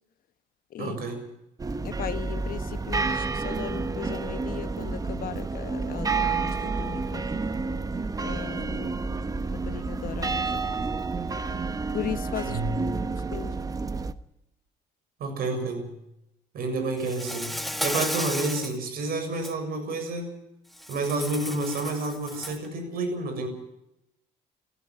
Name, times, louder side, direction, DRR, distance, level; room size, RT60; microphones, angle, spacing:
voice 1, 0.8-1.2 12.5-12.8 15.2-15.9 16.5-20.4 20.9-23.5, right 2 dB, 60° right, 7.2 m, -30 dB
sound 1, 1.6-14.1, right 4 dB, 20° right, 1.1 m, -30 dB
voice 2, 1.8-7.3 8.2-9.0 9.5-10.9 11.9-12.6 13.3-13.5, left 11 dB, 60° left, 1.2 m, -37 dB
Insect, 17.0-18.8 19.2-19.5 20.8-22.7, equal, ahead, 1.6 m, -33 dB
17.0 x 16.0 x 10.0 m
cardioid pair, 110°, 17 cm